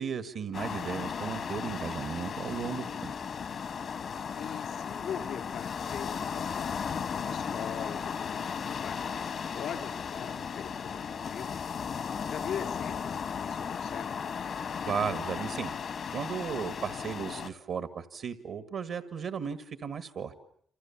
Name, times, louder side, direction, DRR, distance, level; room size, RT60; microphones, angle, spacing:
voice 1, 0.0-3.1 14.9-15.7 16.1-20.4, right 7 dB, 75° right, 11 dB, 1.6 m, -35 dB
sound 1, 0.5-17.5, left 6 dB, 65° left, 1.5 m, -35 dB
voice 2, 4.4-6.8 7.1-9.1 9.5-11.6 12.1-14.3, left 8 dB, 80° left, 8 dB, 3.7 m, -41 dB
28.5 x 27.0 x 7.1 m, 0.64 s
cardioid pair, 75°, 0 cm